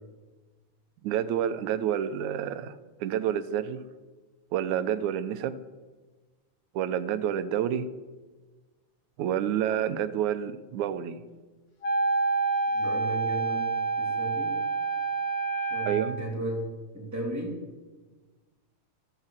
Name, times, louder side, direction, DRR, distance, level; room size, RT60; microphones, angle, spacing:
voice 1, 1.0-3.8 4.5-5.6 6.8-7.9 9.2-11.2 15.9-16.2, right 10 dB, 75° right, 12 dB, 2.1 m, -29 dB
Wind instrument woodwind instrument, 11.8-16.2, right 4 dB, 50° left, 2.3 m, -28 dB
voice 2, 12.7-14.6 15.7-17.6, right 1 dB, 5° right, 0 dB, 2.6 m, -35 dB
14.5 x 12.5 x 7.5 m, 1.3 s
omnidirectional pair, 3.5 m